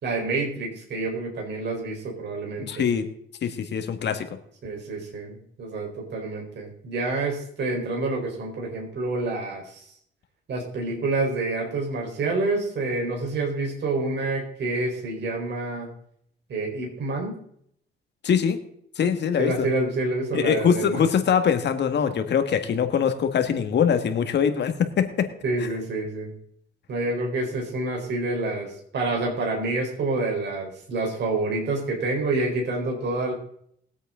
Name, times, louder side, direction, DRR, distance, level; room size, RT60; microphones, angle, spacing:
voice 1, 0.0-2.9 4.6-9.8 10.5-15.9 16.5-17.4 19.4-21.0 25.4-26.3 26.9-33.3, right 2 dB, 60° right, -1 dB, 4.2 m, -28 dB
voice 2, 2.7-3.0 3.4-4.3 18.2-18.6 19.0-19.7 20.3-25.3, left 7 dB, 60° left, 8 dB, 1.7 m, -23 dB
21.0 x 8.2 x 3.8 m, 0.67 s
cardioid pair, 90°, 20 cm